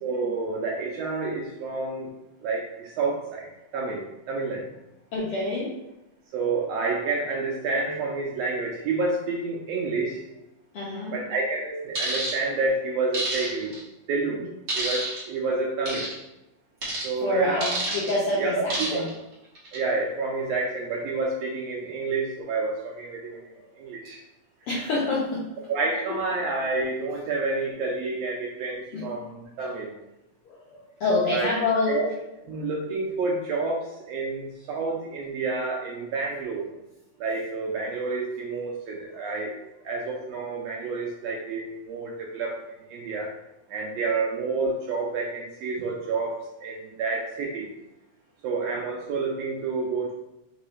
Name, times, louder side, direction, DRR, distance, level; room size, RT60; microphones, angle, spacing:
voice 1, 0.0-2.1 2.4-4.7 6.3-10.2 11.1-13.8 14.1-14.4 14.7-16.1 17.0-17.7 18.4-19.0 19.7-24.2 25.7-29.9 31.3-31.5 31.9-32.1 32.5-36.7 37.2-39.6 39.8-43.3 43.7-47.7 48.4-50.1, right 3 dB, 80° right, -2 dB, 1.5 m, -29 dB
voice 2, 5.1-5.8 10.7-11.2 17.2-19.1 23.5-23.7 24.7-25.5 26.1-26.2 28.9-29.1 30.4-32.0 39.1-39.2, left 2 dB, 70° left, -6 dB, 1.3 m, -27 dB
sound 1, 11.9-12.3 13.1-13.8 14.7-15.2 15.9-16.1 16.8-17.1 17.6-18.1 18.7-19.1 19.5-19.8, right 2 dB, 45° right, 1.2 m, -29 dB
4.7 x 3.1 x 3.1 m, 0.91 s
omnidirectional pair, 3.4 m